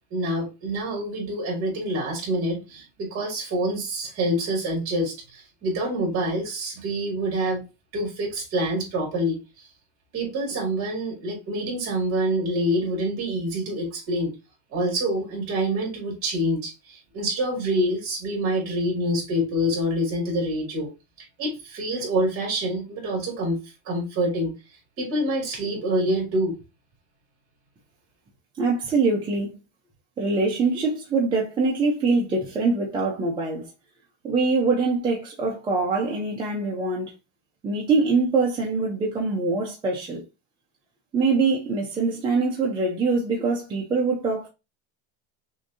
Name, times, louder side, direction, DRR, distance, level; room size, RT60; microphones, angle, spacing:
voice 1, 0.1-7.6 7.9-9.4 10.1-14.3 14.7-20.9 21.4-23.6 23.9-24.5 25.0-26.6, right 1 dB, 30° right, 2.6 m, -26 dB
voice 2, 28.6-29.6 30.2-33.7 34.2-37.1 37.6-40.2 41.1-44.5, right 3 dB, 10° right, 0.4 m, -24 dB
6.3 x 2.7 x 2.5 m
cardioid pair, 175°, 42 cm